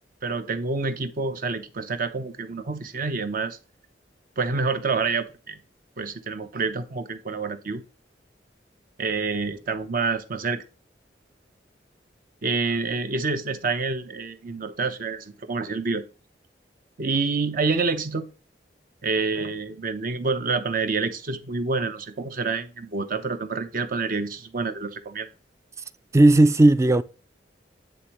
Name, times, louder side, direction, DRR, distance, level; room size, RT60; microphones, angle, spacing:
voice 1, 0.2-3.6 4.4-5.6 6.0-7.8 9.0-10.6 12.4-16.0 17.0-18.3 19.0-25.3, right 4 dB, 50° right, 0.8 m, -27 dB
voice 2, 26.1-27.0, right 2 dB, 15° right, 0.3 m, -15 dB
9.4 x 3.5 x 3.0 m
head